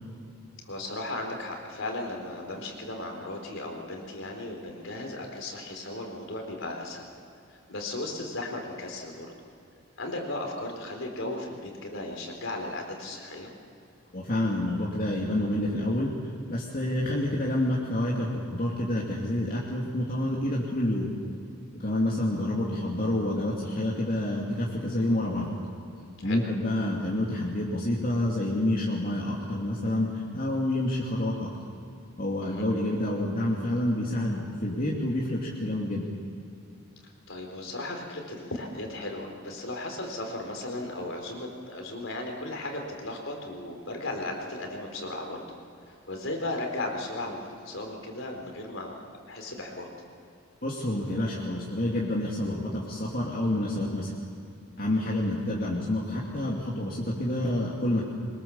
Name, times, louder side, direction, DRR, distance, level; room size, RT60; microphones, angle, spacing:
voice 1, 0.6-7.0 7.5-9.3 10.0-13.5 26.2-26.4 32.4-32.6 37.3-45.6 46.1-49.9, left 2 dB, 70° left, 2 dB, 4.0 m, -36 dB
voice 2, 14.1-16.1 16.5-21.1 21.8-25.5 26.2-31.5 32.2-36.1 50.6-54.1 54.8-58.1, left 1 dB, 45° left, -4 dB, 2.6 m, -28 dB
23.5 x 21.5 x 7.2 m, 2.7 s
head